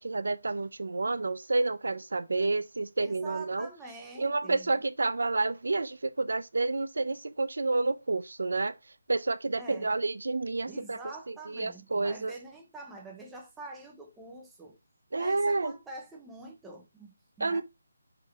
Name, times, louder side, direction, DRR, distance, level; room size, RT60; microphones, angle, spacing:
voice 1, 0.0-3.7 4.2-8.7 9.1-11.0 11.3-12.3 15.1-15.8 17.4-17.6, right 3 dB, 85° right, 0.8 m, -29 dB
voice 2, 3.0-4.7 9.5-9.9 10.7-14.8 15.2-17.6, right 3 dB, 5° right, 0.8 m, -46 dB
6.8 x 4.1 x 3.6 m
hypercardioid pair, 175°, 0 cm